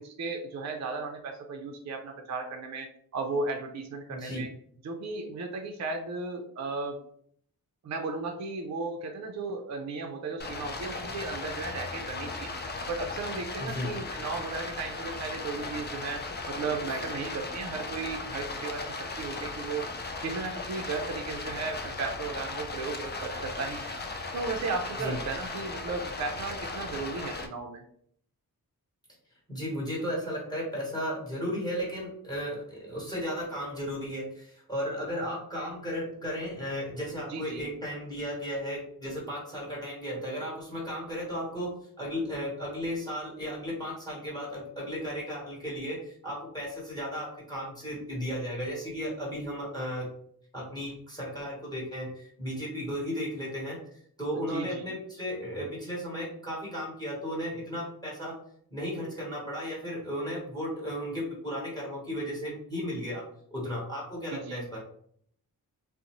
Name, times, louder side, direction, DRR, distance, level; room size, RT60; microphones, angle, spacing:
voice 1, 0.0-4.5 4.8-7.0 7.8-12.5 12.9-19.8 20.2-23.9 24.3-27.8 37.3-37.6 54.5-54.8 64.3-64.6, right 3 dB, 50° right, 3 dB, 0.4 m, -35 dB
voice 2, 4.1-4.4 13.6-13.9 25.0-25.2 29.5-50.1 50.5-58.4 58.7-63.2 63.5-64.8, equal, 10° left, -4 dB, 1.1 m, -35 dB
Stream, 10.4-27.5, left 3 dB, 30° left, 0.4 m, -37 dB
2.5 x 2.0 x 2.9 m, 0.64 s
wide cardioid pair, 80°, 37 cm